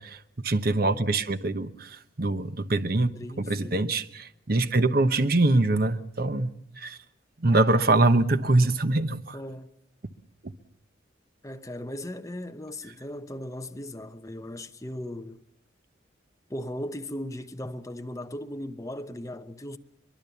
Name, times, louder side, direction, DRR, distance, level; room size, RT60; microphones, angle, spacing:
voice 1, 0.0-3.1 3.4-7.0 7.4-9.4, right 2 dB, 50° right, 1.0 m, -24 dB
voice 2, 3.1-3.9 9.3-9.7 11.4-15.4 16.5-19.8, left 1 dB, 15° left, 0.9 m, -37 dB
23.0 x 22.0 x 7.1 m
head